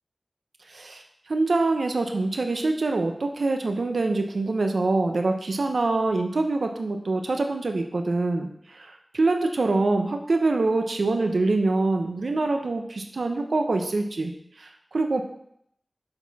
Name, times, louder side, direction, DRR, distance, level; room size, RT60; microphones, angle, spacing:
voice 1, 0.7-1.0 1.3-14.3 14.6-15.2, right 3 dB, 85° right, 4 dB, 0.7 m, -25 dB
6.9 x 4.2 x 4.0 m, 0.71 s
wide cardioid pair, 60°, 0 cm